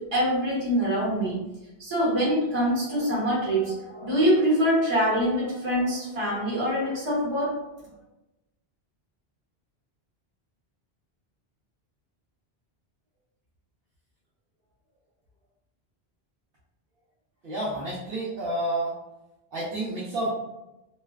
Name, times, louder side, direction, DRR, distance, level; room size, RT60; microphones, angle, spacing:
voice 1, 0.0-1.4 1.8-7.6, equal, 30° right, -6 dB, 0.9 m, -24 dB
voice 2, 17.4-19.0 19.5-20.4, right 1 dB, 65° right, -7 dB, 0.8 m, -29 dB
2.5 x 2.1 x 2.3 m, 0.94 s
omnidirectional pair, 1.1 m